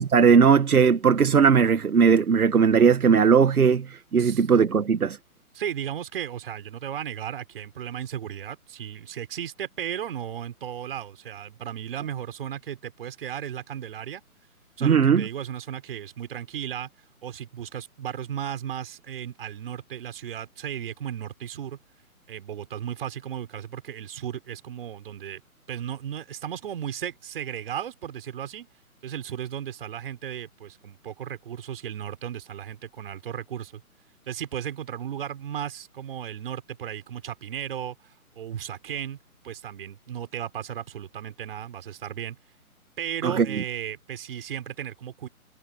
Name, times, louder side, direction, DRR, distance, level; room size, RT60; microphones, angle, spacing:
voice 1, 0.0-5.2 14.8-15.2 43.2-43.5, right 6 dB, 75° right, 1.7 m, -19 dB
voice 2, 5.5-14.2 14.8-16.9 17.2-21.8 22.3-25.4 25.7-28.7 29.0-33.8 34.3-39.2 39.4-42.4 43.0-45.3, right 9 dB, 40° right, 5.9 m, -35 dB
hypercardioid pair, 165°, 44 cm